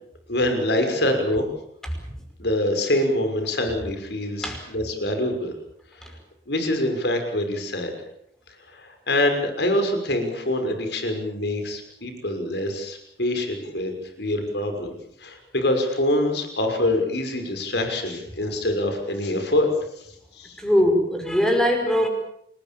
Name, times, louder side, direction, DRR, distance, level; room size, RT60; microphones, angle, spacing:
voice 1, 0.3-1.5 2.4-5.5 5.9-6.0 6.5-7.9 8.7-13.9 14.2-19.7 20.0-20.1 20.3-20.6, left 1 dB, 65° left, 6 dB, 6.0 m, -25 dB
voice 2, 20.6-22.1, equal, 5° left, 4 dB, 5.4 m, -21 dB
29.0 x 20.5 x 7.2 m, 0.72 s
head